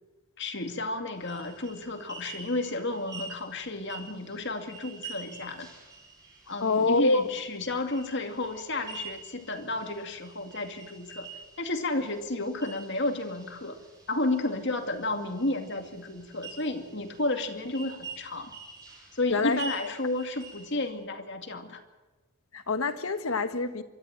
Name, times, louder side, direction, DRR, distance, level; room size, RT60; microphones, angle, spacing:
voice 1, 0.4-5.7 6.5-11.3 11.6-13.8 14.1-18.5 19.1-21.8, left 2 dB, 55° left, 2.4 m, -32 dB
sound 1, 1.2-20.9, right 3 dB, 20° right, 6.0 m, -47 dB
voice 2, 6.6-7.2 19.3-19.6 22.5-23.8, left 3 dB, 80° left, 1.6 m, -25 dB
25.5 x 13.5 x 8.9 m
head